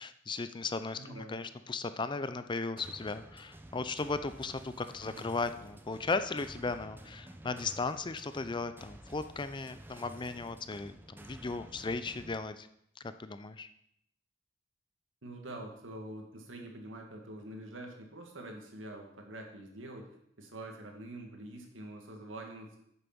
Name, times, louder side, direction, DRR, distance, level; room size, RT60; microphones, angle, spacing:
voice 1, 0.0-12.7 13.0-13.7, left 3 dB, 25° left, 11 dB, 0.5 m, -36 dB
voice 2, 1.0-1.4 5.0-5.3 15.2-20.1 20.4-22.8, right 1 dB, 85° right, 2 dB, 2.1 m, -45 dB
sound 1, 2.8-12.4, right 1 dB, 10° right, 0.7 m, -52 dB
8.9 x 7.0 x 6.1 m, 0.74 s
head